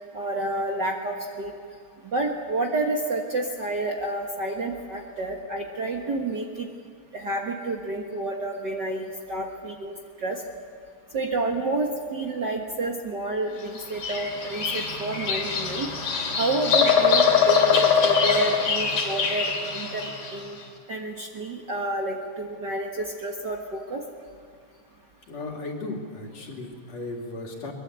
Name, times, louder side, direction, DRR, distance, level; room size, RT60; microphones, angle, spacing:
voice 1, 0.1-1.5 2.1-6.7 7.1-9.9 10.2-10.4 11.1-15.9 16.4-20.6 20.9-24.0, right 2 dB, 45° right, 1 dB, 1.7 m, -29 dB
Bird vocalization bird call bird song, 13.8-20.4, left 6 dB, 85° left, 4.6 m, -23 dB
voice 2, 25.3-27.7, left 2 dB, 60° left, 0 dB, 3.9 m, -35 dB
23.0 x 21.5 x 8.2 m, 2.2 s
omnidirectional pair, 3.4 m